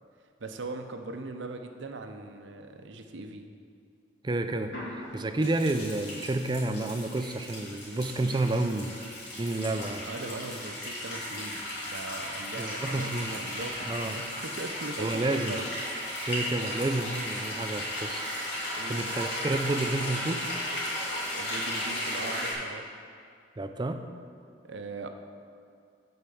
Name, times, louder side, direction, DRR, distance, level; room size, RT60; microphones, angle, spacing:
voice 1, 0.4-3.5 10.1-13.9 14.1-15.7 18.8-19.0 21.3-22.9 24.6-25.1, right 2 dB, 75° right, 6 dB, 0.6 m, -40 dB
voice 2, 4.2-8.9 9.4-10.1 12.6-13.5 13.9-14.2 15.0-15.6 16.3-18.2 18.9-20.5 23.6-24.0, right 2 dB, 25° right, 8 dB, 0.4 m, -30 dB
sound 1, 4.7-22.5, left 1 dB, 60° left, 2.2 m, -35 dB
8.4 x 4.4 x 6.9 m, 2.4 s
head